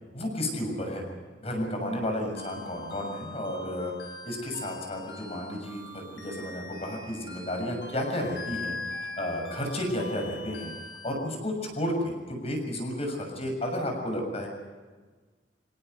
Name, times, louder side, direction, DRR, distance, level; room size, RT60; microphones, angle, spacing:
voice 1, 0.1-1.0 1.4-3.9 4.2-8.8 9.2-10.7 11.0-14.5, left 1 dB, 35° left, 2 dB, 7.0 m, -32 dB
sound 1, 2.4-11.1, left 3 dB, 80° left, 5.0 m, -42 dB
26.0 x 17.5 x 8.0 m, 1.4 s
head